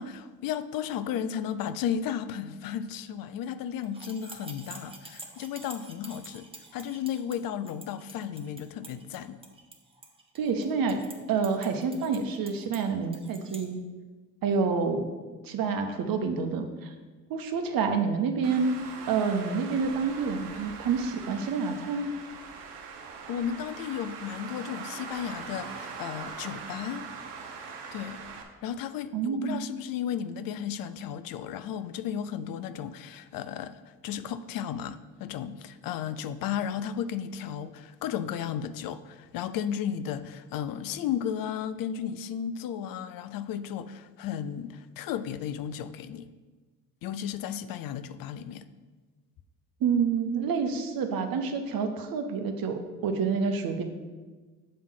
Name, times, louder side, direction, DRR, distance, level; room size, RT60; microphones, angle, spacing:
voice 1, 0.0-9.4 23.3-27.1 27.9-28.2 28.6-33.8 34.0-46.3 47.0-48.7, left 9 dB, 45° left, 13 dB, 0.6 m, -34 dB
sound 1, 3.8-13.6, right 2 dB, 10° right, 1.1 m, -48 dB
voice 2, 10.3-11.0 11.3-13.8 14.4-15.0 15.4-16.9 17.3-18.7 19.1-22.1 29.1-29.6 49.8-53.8, right 5 dB, 45° right, 6 dB, 1.1 m, -28 dB
Traffic noise roadway noise, 18.4-28.4, right 5 dB, 75° right, 1.0 m, -42 dB
7.5 x 3.6 x 6.3 m, 1.3 s
hypercardioid pair, 55°, 47 cm